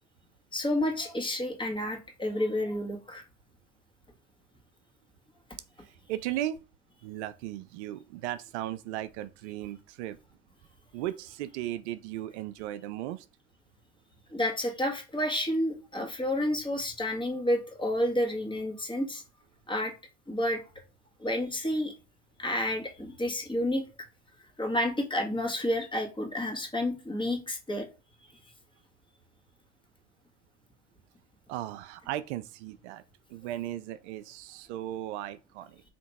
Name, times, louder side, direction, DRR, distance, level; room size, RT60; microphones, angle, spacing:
voice 1, 0.5-3.2 14.3-19.2 19.7-19.9 20.3-20.6 21.2-21.9 22.4-23.8 24.6-27.9, left 1 dB, 15° left, 1.4 m, -30 dB
voice 2, 5.8-6.6 7.0-10.2 10.9-13.3 31.5-33.0 33.3-35.8, right 13 dB, 80° right, 0.5 m, -36 dB
3.5 x 2.9 x 4.0 m
hypercardioid pair, 80°, 34 cm